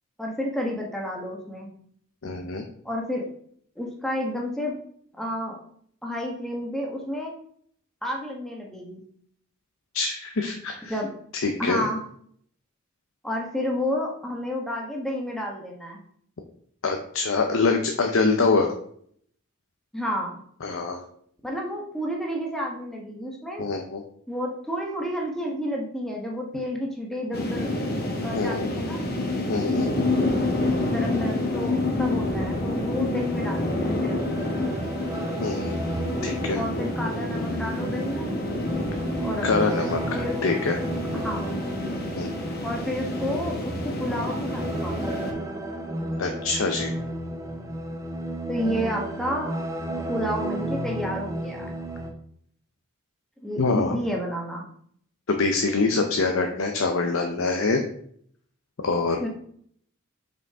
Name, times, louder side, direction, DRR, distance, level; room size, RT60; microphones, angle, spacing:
voice 1, 0.2-1.7 2.8-3.3 3.8-4.8 5.1-5.6 6.0-7.3 8.0-9.0 10.8-11.1 11.6-12.0 13.2-16.0 19.9-20.4 21.4-23.7 24.3-27.7 28.2-29.1 30.8-34.4 36.5-38.3 39.2-39.5 40.1-40.4 41.1-41.5 42.6-45.0 48.5-49.5 50.1-51.7 53.4-54.6 59.2-59.3, equal, ahead, -1 dB, 1.2 m, -30 dB
voice 2, 2.2-2.6 9.9-10.9 11.3-11.9 16.8-18.7 20.6-21.0 23.6-24.0 28.3-28.7 29.5-29.9 35.4-35.8 36.2-36.6 39.4-40.8 42.2-42.3 46.2-46.9 53.6-54.0 55.3-57.8 58.8-59.3, left 3 dB, 75° left, 4 dB, 0.7 m, -25 dB
sound 1, 27.3-45.3, left 2 dB, 45° left, 1.0 m, -28 dB
sound 2, 32.3-52.1, right 1 dB, 15° right, 0.7 m, -33 dB
5.3 x 5.1 x 3.6 m, 0.63 s
head